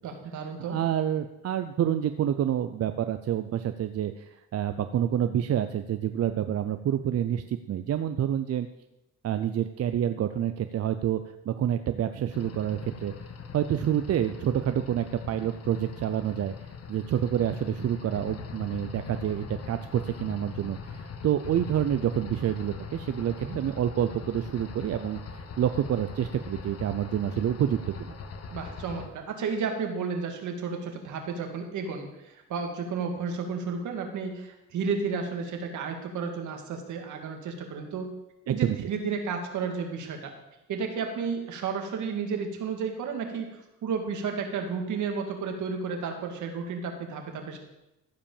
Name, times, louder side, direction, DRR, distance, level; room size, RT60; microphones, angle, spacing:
voice 1, 0.0-0.8 23.4-23.6 28.5-38.1 38.5-40.3 40.7-47.6, right 5 dB, 75° right, 4 dB, 2.1 m, -32 dB
voice 2, 0.6-8.7 9.2-13.1 13.5-16.5 16.9-28.1 38.5-38.9, right 10 dB, 55° right, 9 dB, 0.6 m, -28 dB
sound 1, 12.3-29.1, left 5 dB, 55° left, 1.4 m, -41 dB
15.0 x 5.2 x 7.2 m, 0.92 s
cardioid pair, 90°, 30 cm